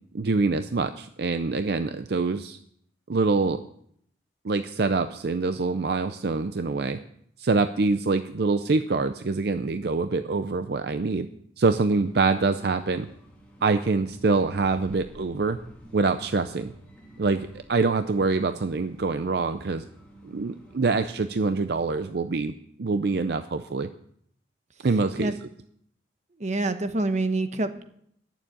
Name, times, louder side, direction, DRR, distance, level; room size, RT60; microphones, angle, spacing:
voice 1, 0.1-2.6 3.1-3.6 4.4-7.0 7.4-11.3 11.6-13.1 13.6-15.6 15.9-16.7 17.2-19.8 20.2-22.5 22.8-23.9 24.8-25.3, right 3 dB, 60° right, 10 dB, 0.5 m, -25 dB
sound 1, 12.0-21.5, right 1 dB, 5° left, 2.8 m, -50 dB
voice 2, 26.4-27.9, right 2 dB, 40° right, 9 dB, 0.9 m, -26 dB
10.5 x 7.2 x 8.7 m, 0.68 s
head